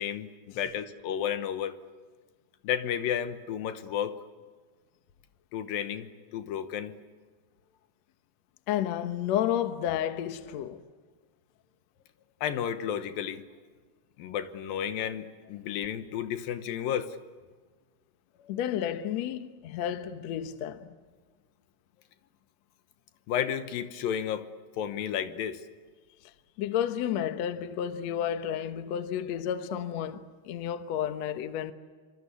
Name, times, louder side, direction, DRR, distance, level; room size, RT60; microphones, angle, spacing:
voice 1, 0.0-1.7 2.6-4.2 5.5-7.0 12.4-13.4 14.2-17.2 23.3-24.5 24.8-25.6, left 9 dB, 70° left, 2.5 m, -32 dB
voice 2, 8.7-10.8 18.4-20.9 26.6-31.7, left 10 dB, 90° left, 1.5 m, -31 dB
26.5 x 25.5 x 8.4 m
omnidirectional pair, 4.9 m